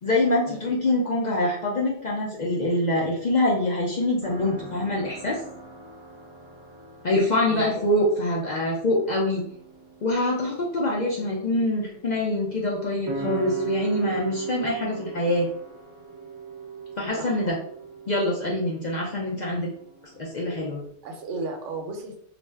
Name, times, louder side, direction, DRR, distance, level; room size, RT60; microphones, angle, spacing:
voice 1, 0.0-5.4 7.0-9.4 10.0-15.5 17.0-17.6 18.1-19.7 20.2-20.8, left 1 dB, 55° left, -3 dB, 0.5 m, -25 dB
sound 1, 4.2-20.9, right 4 dB, 45° right, 0.3 m, -38 dB
voice 2, 21.0-22.2, right 2 dB, 85° right, 3 dB, 1.0 m, -34 dB
2.5 x 2.1 x 3.3 m, 0.64 s
omnidirectional pair, 1.2 m